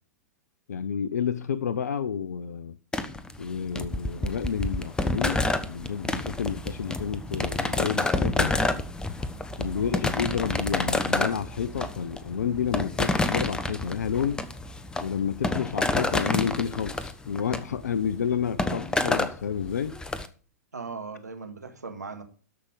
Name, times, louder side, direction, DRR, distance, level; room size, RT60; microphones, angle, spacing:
voice 1, 0.7-2.8 3.4-8.5 9.6-14.4 15.0-20.0, left 7 dB, 70° left, 0.6 m, -30 dB
sound 1, 2.9-20.3, left 2 dB, 10° left, 0.9 m, -29 dB
voice 2, 20.7-22.2, right 4 dB, 85° right, 2.0 m, -39 dB
13.0 x 5.8 x 5.2 m
figure-of-eight pair, 105°, 9 cm